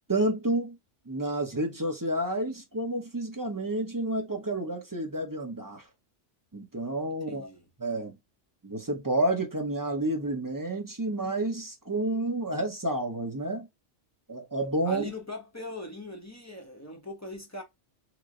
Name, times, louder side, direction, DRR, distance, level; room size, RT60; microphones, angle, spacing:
voice 1, 0.1-0.8 1.1-5.8 6.5-7.5 7.8-8.2 8.6-13.7 14.3-15.0, right 1 dB, 20° right, 0.7 m, -30 dB
voice 2, 7.3-7.6 14.8-17.6, left 1 dB, 15° left, 0.7 m, -40 dB
3.1 x 2.1 x 3.6 m
omnidirectional pair, 1.2 m